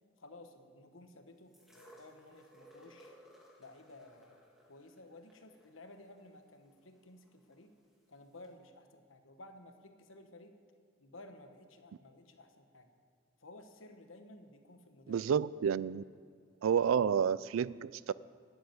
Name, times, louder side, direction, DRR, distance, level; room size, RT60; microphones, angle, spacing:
voice 1, 0.2-3.2 3.6-7.8 8.1-10.6 11.0-12.9 13.4-15.3, left 2 dB, 80° left, 6 dB, 1.2 m, -55 dB
sound 1, 1.5-7.6 8.4-8.5, equal, ahead, 1.7 m, -60 dB
voice 2, 15.1-16.0 16.6-18.1, right 7 dB, 85° right, 20 dB, 0.3 m, -30 dB
12.0 x 8.2 x 9.2 m, 2.1 s
head